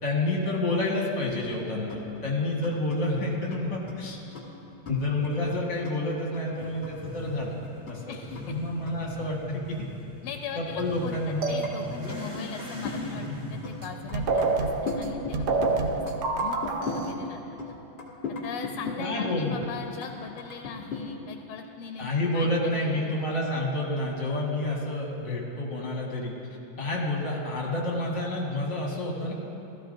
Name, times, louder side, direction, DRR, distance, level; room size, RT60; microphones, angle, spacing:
voice 1, 0.0-4.2 4.9-7.6 7.9-8.1 8.5-9.8 10.6-11.4 19.0-19.5 22.0-26.3 26.8-29.3, left 2 dB, 60° left, -2 dB, 2.4 m, -29 dB
sound 1, 1.3-1.4 1.7-7.3 7.6-9.3 11.1-11.3 11.6-13.4 13.6-13.8 14.1-15.8 16.1-19.7 20.0-21.0, left 4 dB, 35° left, 1.4 m, -38 dB
Motorcycle / Accelerating revving vroom, 6.5-15.4, left 1 dB, 5° right, 2.1 m, -41 dB
voice 2, 8.1-8.5 10.2-15.9 16.2-17.8 18.4-23.2, left 7 dB, 90° left, 5 dB, 1.5 m, -40 dB
sound 2, 11.4-12.2 13.8-13.9 14.1-17.1, right 3 dB, 80° right, 0.6 m, -27 dB
16.0 x 13.5 x 2.6 m, 3.0 s
omnidirectional pair, 2.3 m